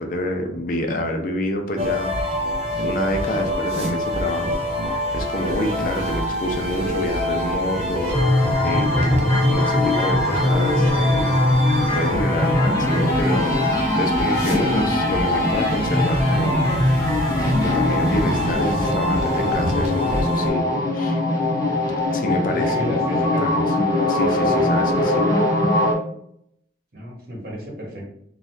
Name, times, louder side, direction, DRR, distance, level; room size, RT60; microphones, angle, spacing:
voice 1, 0.0-2.5 2.8-4.6 5.1-8.4 8.6-11.4 11.9-13.5 14.0-17.1 17.5-21.2 22.1-22.8 23.1-23.6 24.1-25.3, left 1 dB, 50° left, 4 dB, 0.5 m, -27 dB
sound 1, 1.8-20.5, left 1 dB, 35° right, 0.6 m, -25 dB
sound 2, 8.1-25.9, left 1 dB, 20° left, 0.8 m, -21 dB
voice 2, 22.4-23.4 26.9-28.1, equal, 55° right, -3 dB, 1.0 m, -31 dB
2.6 x 2.3 x 3.2 m, 0.70 s
head